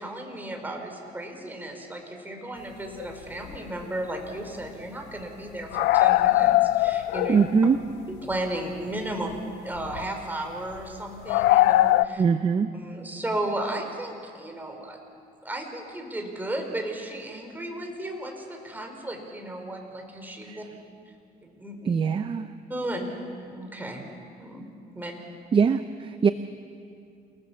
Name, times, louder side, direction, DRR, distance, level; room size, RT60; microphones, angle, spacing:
voice 1, 0.0-7.4 8.2-12.2 12.7-15.0 15.4-20.6 21.4-21.9 22.7-23.1 23.4-24.0 24.4-24.6 24.9-25.1, right 1 dB, 10° right, 3 dB, 4.3 m, -34 dB
sound 1, 3.0-3.1 3.5-3.6 3.8-3.9 5.7-7.7 8.3-8.4 9.8-10.0 11.3-12.1, left 16 dB, 85° left, 0.5 m, -21 dB
voice 2, 7.3-7.8 12.2-12.7 20.4-20.6 21.8-22.5 25.5-26.3, right 6 dB, 30° right, 11 dB, 0.7 m, -22 dB
29.0 x 19.0 x 7.1 m, 2.4 s
cardioid pair, 110°, 17 cm